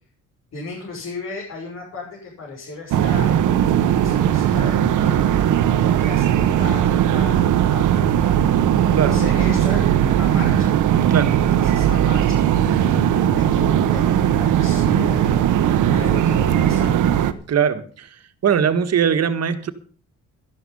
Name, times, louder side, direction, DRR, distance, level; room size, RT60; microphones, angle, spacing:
voice 1, 0.5-3.5 4.0-5.4 6.0-8.5 8.9-10.7 11.5-17.0, left 3 dB, 60° left, 6.2 m, -35 dB
sound 1, 2.9-17.3, right 10 dB, 85° right, 1.2 m, -18 dB
voice 2, 17.5-18.1 18.4-19.7, right 7 dB, 55° right, 1.8 m, -20 dB
13.0 x 11.5 x 5.5 m
cardioid pair, 90°, 30 cm